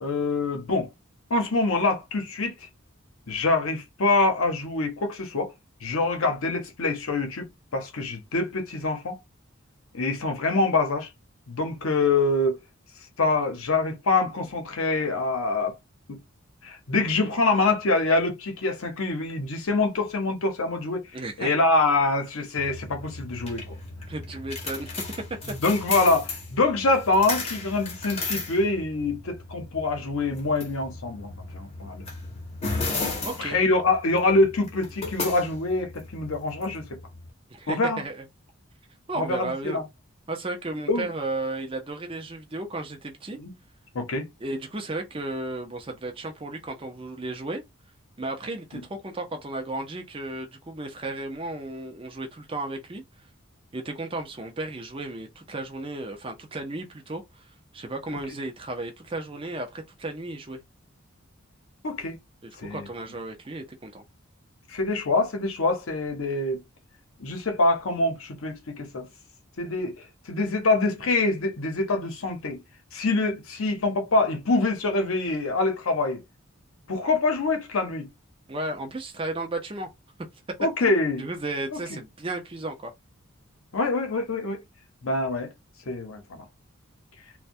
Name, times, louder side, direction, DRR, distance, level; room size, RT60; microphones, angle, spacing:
voice 1, 0.0-0.9 1.3-2.5 3.3-5.5 5.8-7.5 7.7-9.2 9.9-11.1 11.5-12.6 13.2-15.8 16.1-16.2 16.6-21.1 21.4-23.6 25.5-32.1 33.4-37.0 37.7-38.0 39.2-39.8 40.9-41.1 43.4-43.5 43.9-44.2 61.8-62.2 62.6-62.9 64.7-66.6 67.2-69.1 69.6-69.9 70.3-72.6 72.9-76.2 76.9-78.1 80.6-81.3 81.7-81.8 83.7-84.6 85.0-85.5 85.9-86.4, left 3 dB, 75° left, 0.8 m, -25 dB
voice 2, 21.1-21.5 24.0-25.0 33.2-33.6 37.5-38.3 39.1-39.9 40.3-43.4 44.4-47.6 48.2-53.0 53.7-60.6 62.4-64.0 78.5-79.9 80.8-82.9, right 2 dB, 25° right, 0.5 m, -34 dB
sound 1, 22.6-37.3, left 3 dB, 30° left, 0.7 m, -35 dB
2.2 x 2.2 x 2.6 m
head